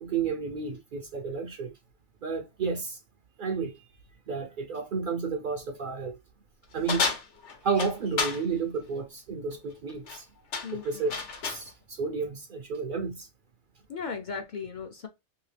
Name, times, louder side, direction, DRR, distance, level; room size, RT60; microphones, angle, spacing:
voice 1, 0.0-1.7 2.2-3.0 3.4-3.9 4.3-6.2 6.7-7.1 7.6-10.3 10.7-11.1 11.4-13.3, right 5 dB, 60° right, 0.6 m, -31 dB
sound 1, 6.9-8.4 9.9-10.2 10.5-11.7, left 4 dB, 80° left, 1.1 m, -31 dB
voice 2, 10.6-11.0 13.9-15.1, left 5 dB, 55° left, 0.6 m, -36 dB
2.8 x 2.7 x 3.2 m
omnidirectional pair, 1.2 m